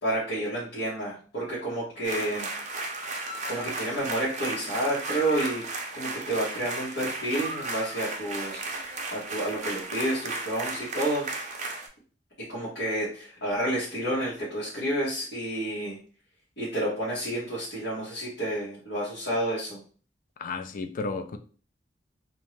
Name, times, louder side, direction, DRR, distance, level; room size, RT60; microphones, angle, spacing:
voice 1, 0.0-2.5 3.5-5.6 5.9-8.8 9.1-11.3 12.5-16.0 16.6-19.8, right 1 dB, 85° left, -9 dB, 1.1 m, -30 dB
sound 1, 2.0-11.9, right 2 dB, 40° right, 0.5 m, -35 dB
voice 2, 20.4-21.4, left 3 dB, 50° left, 9 dB, 0.3 m, -33 dB
2.6 x 2.2 x 3.1 m, 0.40 s
head